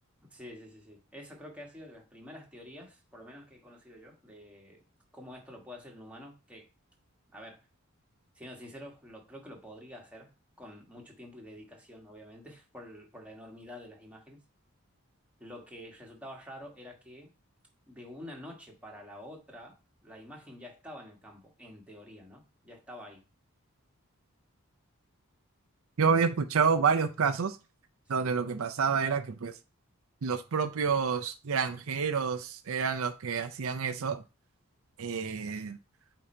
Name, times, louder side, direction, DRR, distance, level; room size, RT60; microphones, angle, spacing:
voice 1, 0.3-4.8 5.1-6.7 7.3-7.6 8.3-10.3 10.6-14.4 15.4-17.3 17.9-19.8 20.0-23.2 28.1-28.3, left 1 dB, 5° right, 1.4 m, -48 dB
voice 2, 26.0-27.6 28.1-29.5 30.2-34.2 35.0-35.8, right 5 dB, 70° right, 0.5 m, -28 dB
8.5 x 2.8 x 4.4 m
head